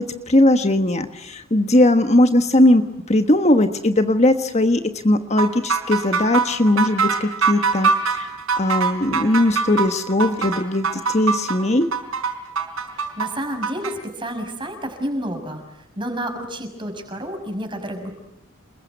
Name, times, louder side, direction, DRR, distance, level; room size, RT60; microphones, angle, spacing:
voice 1, 0.0-11.9, left 1 dB, 30° left, 8 dB, 1.4 m, -19 dB
sound 1, 5.4-13.9, right 5 dB, 90° right, 4.7 m, -22 dB
voice 2, 12.9-18.1, equal, 25° right, 6 dB, 6.0 m, -30 dB
29.0 x 22.0 x 9.4 m, 0.86 s
head